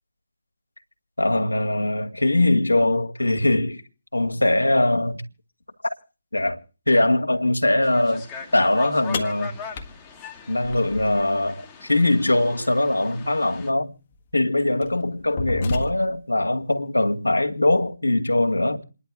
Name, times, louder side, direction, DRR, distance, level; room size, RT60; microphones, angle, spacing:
voice 1, 1.2-3.8 4.1-5.2 5.8-5.9 6.3-6.6 6.9-8.2 8.5-9.5 10.5-13.9 14.3-18.8, left 1 dB, 85° left, 2.3 m, -21 dB
sound 1, 7.8-13.7, left 6 dB, 15° left, 1.7 m, -40 dB
sound 2, 9.1-11.3 13.2-13.3 14.1-14.3 14.8-16.3, left 3 dB, 30° left, 1.6 m, -31 dB
29.0 x 11.0 x 3.6 m
figure-of-eight pair, 150°, 0 cm